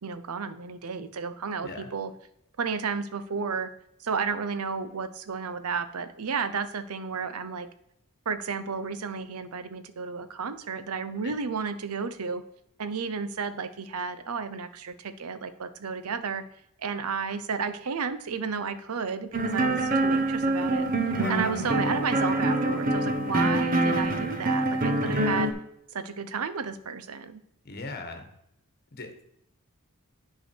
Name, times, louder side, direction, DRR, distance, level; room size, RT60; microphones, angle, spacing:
voice 1, 0.0-2.1 2.6-3.7 4.0-7.7 8.3-12.4 12.8-16.4 16.8-20.9 21.3-25.5 25.9-27.4, right 5 dB, 85° right, 12 dB, 0.7 m, -32 dB
sound 1, 19.3-25.5, right 2 dB, 40° right, 1.0 m, -25 dB
voice 2, 21.1-21.7 25.0-25.4 27.6-28.3 28.9-29.2, left 3 dB, 45° left, 6 dB, 1.3 m, -38 dB
9.3 x 4.9 x 4.5 m, 0.77 s
head